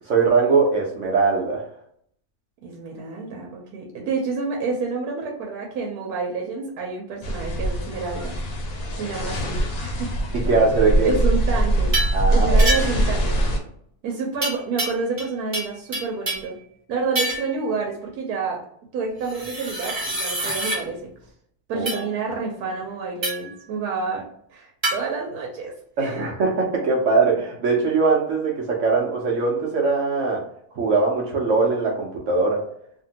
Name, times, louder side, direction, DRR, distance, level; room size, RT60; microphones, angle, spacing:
voice 1, 0.1-1.6 10.4-11.1 12.1-12.6 21.7-22.1 26.0-30.4 30.7-32.6, right 4 dB, 65° right, -2 dB, 0.9 m, -21 dB
voice 2, 2.6-8.4 8.9-10.1 11.0-12.0 12.3-13.4 14.0-16.6 16.9-18.7 18.9-21.1 21.7-25.7 26.0-26.2, right 4 dB, 85° right, 0 dB, 1.1 m, -29 dB
sound 1, 7.2-13.6, right 1 dB, 75° left, 1.1 m, -22 dB
sound 2, 11.9-12.2 12.6-13.1 14.4-15.3 15.5-16.5 17.1-17.5 19.2-20.8 21.9-22.0 23.2-23.5 24.8-25.0, right 1 dB, 30° right, 0.5 m, -27 dB
2.8 x 2.5 x 2.7 m, 0.66 s
omnidirectional pair, 1.6 m